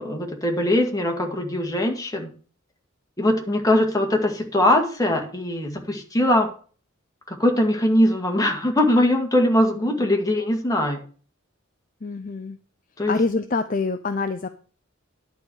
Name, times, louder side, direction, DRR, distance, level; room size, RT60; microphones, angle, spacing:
voice 1, 0.0-2.3 3.2-6.5 7.3-11.0 13.0-13.1, left 1 dB, 20° left, 1 dB, 2.0 m, -21 dB
voice 2, 9.8-10.1 12.0-12.6 13.1-14.5, left 3 dB, 40° left, 8 dB, 0.6 m, -26 dB
10.5 x 4.8 x 8.0 m, 0.41 s
head